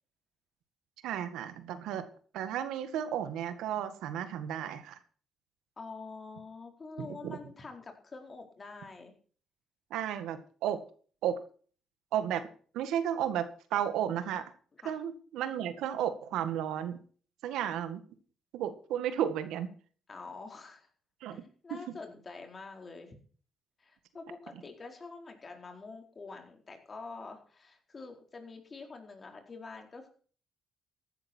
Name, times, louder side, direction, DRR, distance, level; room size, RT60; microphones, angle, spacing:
voice 1, 1.0-2.1 2.3-5.0 7.0-7.4 9.9-10.8 11.2-11.4 12.1-12.5 12.7-14.5 14.9-17.0 17.4-18.0 18.5-19.7 21.2-21.4 21.7-21.8, right 10 dB, 90° right, 10 dB, 1.8 m, -33 dB
voice 2, 5.8-9.1 14.8-15.0 20.1-20.9 21.2-23.1 23.8-30.1, left 3 dB, 35° left, 4 dB, 4.4 m, -46 dB
15.0 x 12.0 x 4.5 m, 0.43 s
cardioid pair, 90°, 0 cm